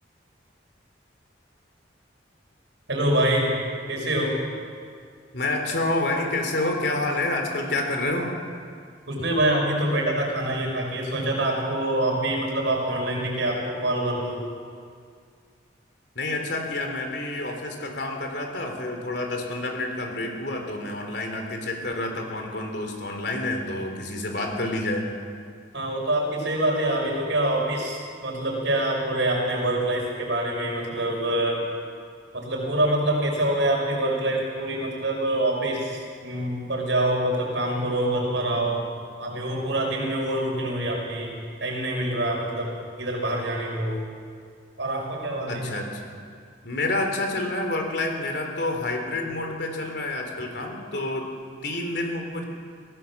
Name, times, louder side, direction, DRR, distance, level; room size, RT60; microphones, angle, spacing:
voice 1, 2.9-3.5 3.9-4.4 9.1-14.4 25.7-31.6 32.3-38.8 39.2-42.7 43.0-44.0 44.8-45.7, right 1 dB, 75° right, -1 dB, 5.9 m, -25 dB
voice 2, 5.3-8.3 16.2-25.1 45.5-46.2 46.6-51.3 51.6-52.4, left 2 dB, 60° left, 3 dB, 3.6 m, -28 dB
23.5 x 16.5 x 7.3 m, 2.2 s
head